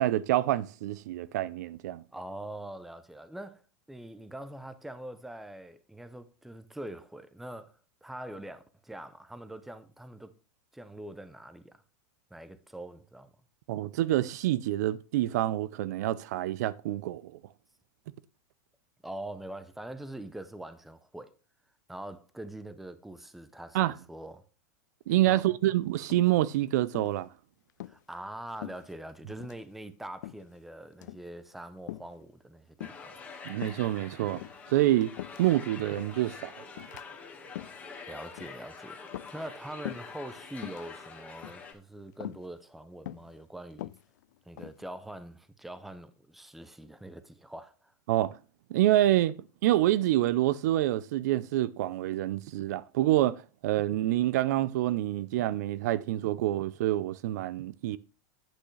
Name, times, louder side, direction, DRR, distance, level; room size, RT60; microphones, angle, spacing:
voice 1, 0.0-2.0 13.7-17.3 23.7-23.9 25.1-27.3 33.4-34.4 34.7-36.5 36.8-36.9 48.1-48.4 48.7-49.3 49.6-58.0, right 14 dB, 70° right, 0.5 m, -27 dB
voice 2, 2.1-3.6 3.9-10.3 10.7-11.8 12.3-13.3 19.0-21.3 21.9-24.4 25.3-25.4 27.9-33.2 38.1-39.0 39.3-43.9 44.5-47.9, right 1 dB, ahead, 0.6 m, -43 dB
sound 1, 26.1-26.6 26.9-27.2 27.7-28.0 28.6-29.1 29.4-29.6 30.2-30.6 30.9-31.3 31.9-32.2 32.8-33.2 33.6-33.9 34.3-35.6 36.0-36.3 36.8-37.0 37.4-37.8 38.4-38.7 39.1-39.6 39.8-40.2 40.5-40.9 41.4-41.7 42.2-42.5 43.1-43.3 43.7-44.8, left 15 dB, 75° left, 0.4 m, -42 dB
sound 2, 32.8-41.7, left 4 dB, 15° left, 1.5 m, -46 dB
8.8 x 7.9 x 3.2 m
supercardioid pair, 150°, 9 cm